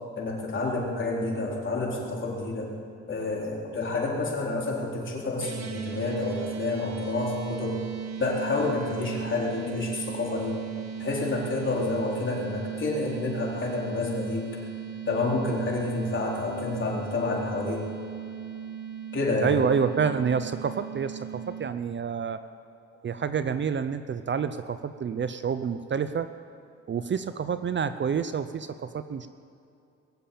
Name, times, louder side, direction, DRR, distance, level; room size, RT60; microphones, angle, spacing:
voice 1, 0.2-2.7 3.1-7.7 8.2-10.6 11.0-14.5 15.1-17.8 19.1-19.5, left 2 dB, 40° left, -3 dB, 4.2 m, -29 dB
sound 1, 5.4-21.7, right 8 dB, 65° right, 1.6 m, -37 dB
voice 2, 19.4-22.4 23.0-26.3 26.9-29.3, right 6 dB, 40° right, 11 dB, 0.6 m, -28 dB
21.5 x 7.5 x 8.6 m, 2.5 s
cardioid pair, 90°, 30 cm